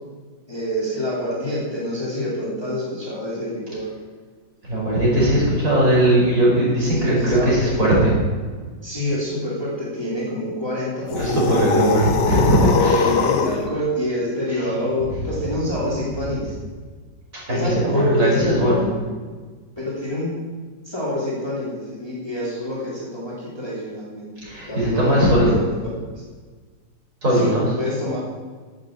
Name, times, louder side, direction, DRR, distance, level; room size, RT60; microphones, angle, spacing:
voice 1, 0.5-3.9 6.8-7.7 8.8-12.0 12.6-16.5 17.5-18.9 19.8-20.3 20.8-25.6 27.3-27.5 27.8-28.2, left 1 dB, 15° left, -6 dB, 3.1 m, -26 dB
voice 2, 4.6-8.1 11.2-13.1 14.5-14.9 17.3-18.8 24.4-25.6 27.2-27.7, right 1 dB, 45° right, -6 dB, 5.5 m, -19 dB
sound 1, 11.1-13.7, left 6 dB, 65° left, 1.6 m, -22 dB
9.7 x 8.8 x 8.7 m, 1.5 s
omnidirectional pair, 2.0 m